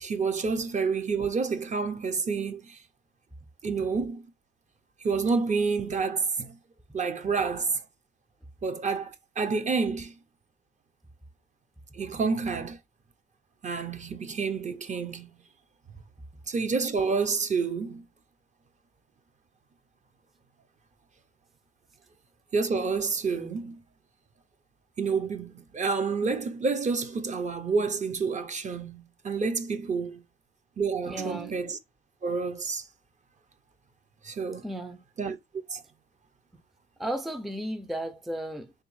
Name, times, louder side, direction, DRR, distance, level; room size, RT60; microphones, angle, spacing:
voice 1, 0.0-2.8 3.6-4.2 5.0-6.5 6.9-7.8 8.6-10.1 11.9-12.8 13.6-15.3 16.5-18.0 22.5-23.8 25.0-30.2 30.8-31.8 32.2-32.8 34.2-34.6 35.2-35.4 35.7-35.8, right 4 dB, 35° right, 0.6 m, -29 dB
voice 2, 31.0-31.5 34.6-35.0 37.0-38.7, right 1 dB, ahead, 0.4 m, -34 dB
3.5 x 3.4 x 3.1 m
cardioid pair, 90°, 20 cm